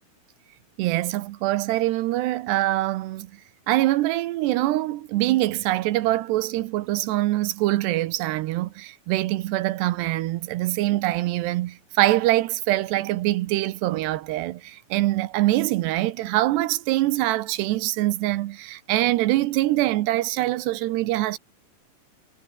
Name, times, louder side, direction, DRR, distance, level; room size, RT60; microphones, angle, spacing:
voice 1, 0.8-3.3 3.7-21.4, right 16 dB, 75° right, 2.8 m, -24 dB
omnidirectional pair, 5.4 m